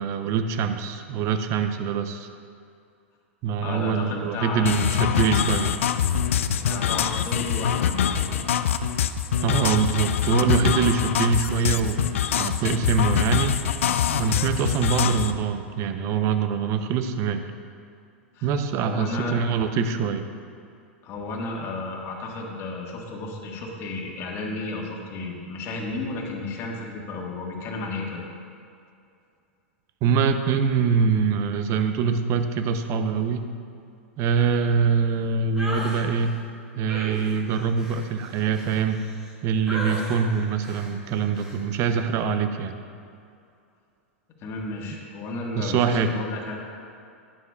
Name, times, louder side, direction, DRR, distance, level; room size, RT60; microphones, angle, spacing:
voice 1, 0.0-2.3 3.4-5.7 9.4-13.6 14.2-17.4 18.4-20.2 30.0-33.5 34.2-36.3 36.7-39.0 39.4-42.7 45.5-46.1, right 6 dB, 45° right, 8 dB, 0.6 m, -24 dB
voice 2, 3.6-4.9 5.7-5.8 6.5-8.4 18.3-18.5 18.8-19.4 21.0-28.2 44.4-46.6, left 3 dB, 40° left, -1 dB, 1.6 m, -33 dB
sound 1, 4.7-15.3, left 8 dB, 75° left, 0.4 m, -24 dB
sound 2, 35.6-36.0 36.9-39.3 39.7-40.2 40.6-40.9 41.3-41.6, equal, 10° right, 1.8 m, -35 dB
11.0 x 8.9 x 2.4 m, 2.4 s
hypercardioid pair, 105°, 7 cm